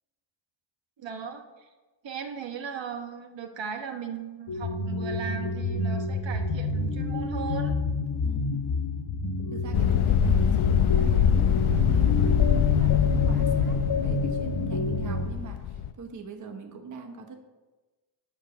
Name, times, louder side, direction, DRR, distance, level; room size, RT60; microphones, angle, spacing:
voice 1, 1.0-1.7 2.0-7.7, right 6 dB, 65° right, 6 dB, 1.1 m, -37 dB
sound 1, 4.5-15.3, left 2 dB, 60° left, 1.2 m, -28 dB
voice 2, 8.2-8.7 9.5-17.3, right 5 dB, 40° right, 4 dB, 1.0 m, -42 dB
sound 2, 9.7-15.9, left 10 dB, 80° left, 0.7 m, -24 dB
12.0 x 5.0 x 7.0 m, 1.2 s
wide cardioid pair, 175°, 49 cm